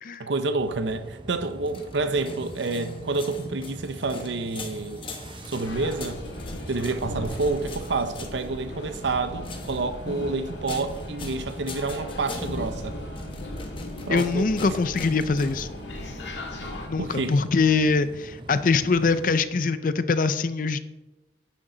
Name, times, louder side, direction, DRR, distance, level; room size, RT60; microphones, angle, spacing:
voice 1, 0.2-5.0 5.5-6.2 6.7-13.0 14.1-14.5 17.0-17.4, right 3 dB, 80° right, 0.7 m, -28 dB
sound 1, 0.6-19.4, right 1 dB, 25° right, 0.6 m, -44 dB
sound 2, 1.5-15.6, left 2 dB, 30° left, 1.2 m, -42 dB
sound 3, 5.6-16.9, left 1 dB, 75° left, 1.8 m, -38 dB
voice 2, 14.1-15.7 16.9-20.8, left 4 dB, 45° left, 0.5 m, -23 dB
10.5 x 9.9 x 3.9 m
head